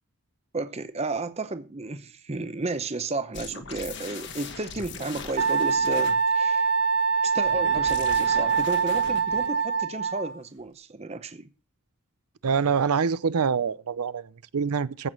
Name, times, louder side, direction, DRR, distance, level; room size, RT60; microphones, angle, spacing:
voice 1, 0.5-6.7 7.2-11.5, right 3 dB, 30° right, 0.7 m, -33 dB
sound 1, 3.3-6.3 7.4-9.6, left 4 dB, 50° left, 1.4 m, -40 dB
Wind instrument woodwind instrument, 5.4-10.4, right 5 dB, 60° right, 1.7 m, -24 dB
voice 2, 12.4-15.1, right 6 dB, 90° right, 0.6 m, -25 dB
15.0 x 6.2 x 5.2 m
head